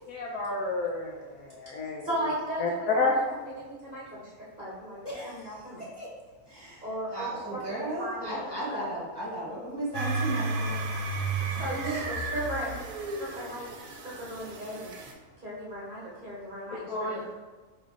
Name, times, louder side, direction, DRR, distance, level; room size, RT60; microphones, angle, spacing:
voice 1, 0.1-2.1 2.6-3.2 16.9-17.3, left 3 dB, 80° left, -2 dB, 1.1 m, -30 dB
voice 2, 2.0-2.6 2.9-3.0 3.6-4.3 4.6-5.9 6.8-8.9 11.6-12.8 13.2-13.7 14.0-14.9 15.4-17.1, right 1 dB, 35° right, -8 dB, 1.2 m, -36 dB
voice 3, 5.0-5.4 6.0-6.1 6.5-6.8 7.1-10.8 11.8-12.0, right 1 dB, 25° left, -6 dB, 0.5 m, -35 dB
sound 1, 9.9-15.1, right 3 dB, 85° right, 1.1 m, -33 dB
5.0 x 3.1 x 2.4 m, 1.3 s
omnidirectional pair, 1.6 m